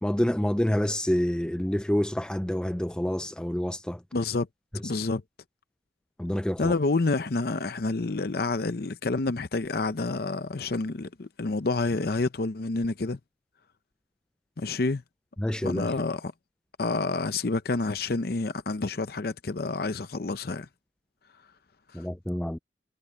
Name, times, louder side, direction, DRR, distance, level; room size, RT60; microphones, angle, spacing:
voice 1, 0.0-4.0 6.2-6.7 15.4-15.9 21.9-22.6, equal, 5° left, 0.3 m, -27 dB
voice 2, 4.1-4.5 4.8-5.2 6.6-13.2 14.6-15.0 15.6-16.3 16.8-20.7, left 3 dB, 55° left, 0.6 m, -28 dB
head